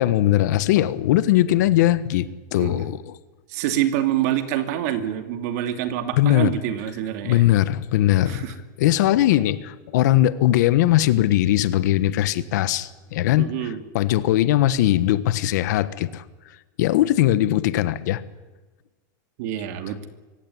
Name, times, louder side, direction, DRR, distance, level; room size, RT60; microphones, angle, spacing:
voice 1, 0.0-3.2 6.2-6.5 7.2-8.4 8.8-13.5 13.9-16.2 16.8-18.2, left 14 dB, 60° left, 15 dB, 1.3 m, -20 dB
voice 2, 3.5-7.4 8.3-8.5 13.4-13.8 19.4-20.1, right 11 dB, 55° right, 8 dB, 2.7 m, -26 dB
24.0 x 17.0 x 9.9 m, 1.2 s
supercardioid pair, 165°, 10 cm